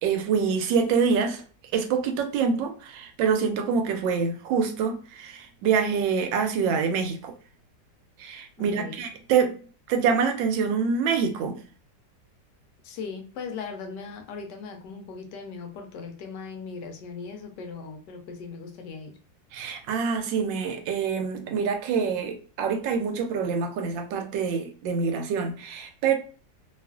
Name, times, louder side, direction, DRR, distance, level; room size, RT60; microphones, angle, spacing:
voice 1, 0.0-1.4 1.7-7.3 8.2-9.6 9.9-11.6 19.5-26.2, right 6 dB, 85° right, 1.3 m, -26 dB
voice 2, 8.6-9.0 12.8-19.2, left 5 dB, 75° left, 1.1 m, -38 dB
3.1 x 2.4 x 2.2 m
omnidirectional pair, 2.0 m